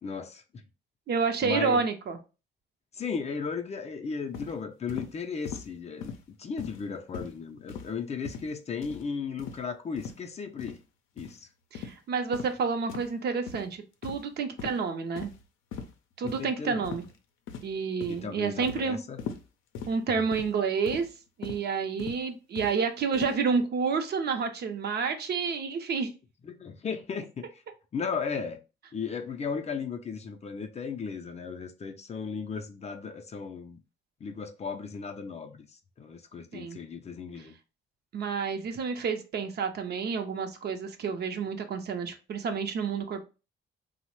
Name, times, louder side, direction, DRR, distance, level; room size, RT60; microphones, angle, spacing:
voice 1, 0.0-0.4 1.4-1.8 2.9-10.8 11.2-11.5 16.2-16.9 18.1-19.2 20.1-20.2 26.4-27.6 27.9-28.6 28.9-33.8 34.2-37.5, left 5 dB, 35° left, 0.4 m, -36 dB
voice 2, 1.1-2.2 11.7-15.3 16.2-17.0 17.6-19.0 19.9-21.1 21.4-26.1 36.5-36.8 38.1-43.2, right 5 dB, 55° right, 0.6 m, -29 dB
sound 1, 4.3-4.5 4.9-5.1 5.4-5.7 6.0-6.2 6.6-6.9 7.1-7.3 7.7-7.9 8.2-8.5 8.8-9.0 9.4-9.6 10.0-10.2 10.6-10.8 11.2-11.3 11.7-12.0 12.3-12.5 12.9-13.1 13.5-13.7 14.0-14.3 14.6-14.8 15.2-15.4 15.7-15.9 16.3-16.4 16.8-17.1 17.5-17.8 18.0-18.2 18.6-18.8 19.2-19.4 19.7-19.9 20.3-20.5 20.9-21.1 21.4-21.6 22.0-22.2 22.5-22.7 23.1-23.4, left 6 dB, 85° left, 0.5 m, -40 dB
3.0 x 2.0 x 2.9 m
cardioid pair, 90°, 20 cm